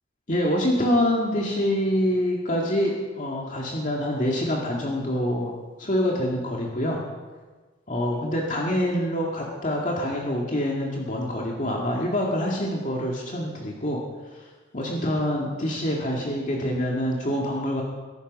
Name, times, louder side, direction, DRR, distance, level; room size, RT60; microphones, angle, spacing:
voice 1, 0.3-5.5 5.8-7.0 7.9-14.0 14.3-14.4 14.7-17.8, equal, 45° left, -2 dB, 2.3 m, -26 dB
22.5 x 11.5 x 5.5 m, 1.3 s
head